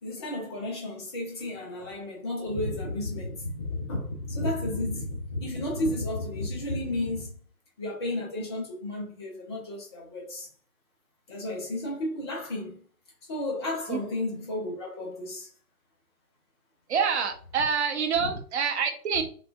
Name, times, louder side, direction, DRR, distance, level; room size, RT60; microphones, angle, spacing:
voice 1, 0.0-7.4 7.8-10.5 11.3-12.8 13.3-15.5 18.2-18.4, left 1 dB, 20° left, 0.5 m, -32 dB
voice 2, 16.9-19.2, right 6 dB, 45° right, 0.7 m, -26 dB
3.7 x 2.4 x 2.3 m
figure-of-eight pair, 120°, 46 cm